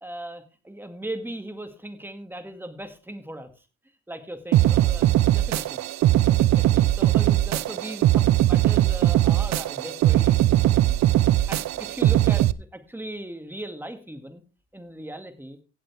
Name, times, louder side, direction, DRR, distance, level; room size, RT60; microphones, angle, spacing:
voice 1, 0.0-3.5 4.1-5.1 5.3-5.8 6.3-10.6 10.8-11.0 11.5-14.4 14.7-15.6, right 1 dB, 5° right, 7 dB, 2.2 m, -38 dB
sound 1, 4.5-12.5, right 13 dB, 65° right, 0.6 m, -20 dB
17.0 x 7.7 x 3.5 m, 0.33 s
cardioid pair, 90°, 30 cm